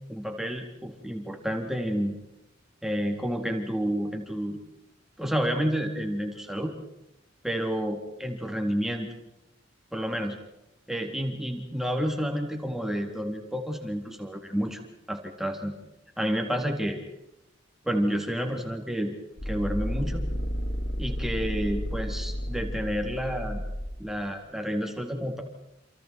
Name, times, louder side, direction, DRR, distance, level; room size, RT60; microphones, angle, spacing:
voice 1, 0.1-2.2 2.8-4.6 5.2-6.7 7.4-9.1 9.9-10.4 10.9-14.8 15.1-15.7 16.2-17.0 17.9-19.2 19.5-20.2 21.0-23.6 24.0-25.4, equal, ahead, 2 dB, 3.6 m, -30 dB
sound 1, 19.4-24.3, equal, 80° left, 2.5 m, -32 dB
29.0 x 28.5 x 4.7 m, 0.89 s
head